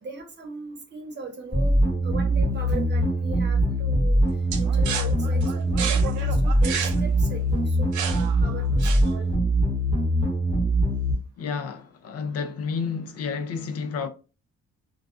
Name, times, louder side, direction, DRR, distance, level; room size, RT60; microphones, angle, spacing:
voice 1, 0.0-4.2 4.6-9.3, right 4 dB, 35° right, 0.8 m, -39 dB
sound 1, 1.5-11.1, right 1 dB, 20° left, 1.0 m, -22 dB
sound 2, 4.5-9.4, right 7 dB, 80° right, 0.5 m, -32 dB
voice 2, 11.4-14.1, left 5 dB, 55° left, 0.4 m, -30 dB
2.3 x 2.3 x 2.4 m
cardioid pair, 90°, 30 cm